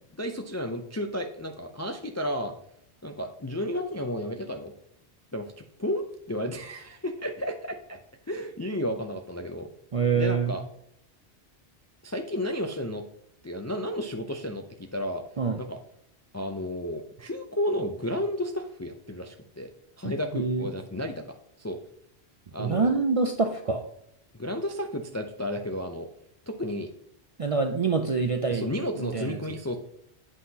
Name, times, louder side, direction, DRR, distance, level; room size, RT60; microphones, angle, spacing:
voice 1, 0.2-2.5 3.0-4.7 5.3-5.5 5.8-8.0 8.3-9.7 10.1-10.6 12.0-13.0 13.4-15.2 15.6-15.8 16.3-19.7 20.0-21.8 22.5-22.9 24.3-26.1 26.5-26.9 28.5-29.8, equal, 30° left, 4 dB, 0.3 m, -32 dB
voice 2, 9.9-10.6 15.4-15.6 20.3-20.7 22.6-23.9 27.4-28.7 29.0-29.4, right 4 dB, 50° right, 5 dB, 0.4 m, -25 dB
8.1 x 5.7 x 2.8 m, 0.74 s
omnidirectional pair, 1.1 m